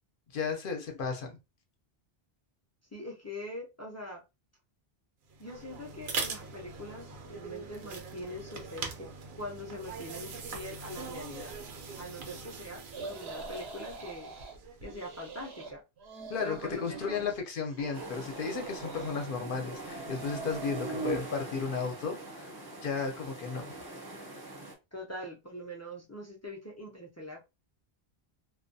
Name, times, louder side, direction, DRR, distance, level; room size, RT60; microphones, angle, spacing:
voice 1, 0.3-1.4 16.3-22.5 22.8-23.7, left 5 dB, 65° left, 0.7 m, -34 dB
voice 2, 2.9-4.2 5.4-11.6 12.0-14.3 14.8-15.8 16.4-17.3 24.9-27.4, left 1 dB, 25° left, 0.4 m, -43 dB
sound 1, 5.3-15.1, right 4 dB, 60° right, 0.7 m, -42 dB
sound 2, 12.9-14.6 14.8-15.7 16.0-17.4 17.7-19.3 19.7-21.2, right 4 dB, 85° right, 0.9 m, -42 dB
sound 3, 17.9-24.7, right 1 dB, 25° right, 0.6 m, -44 dB
2.3 x 2.2 x 2.6 m
omnidirectional pair, 1.0 m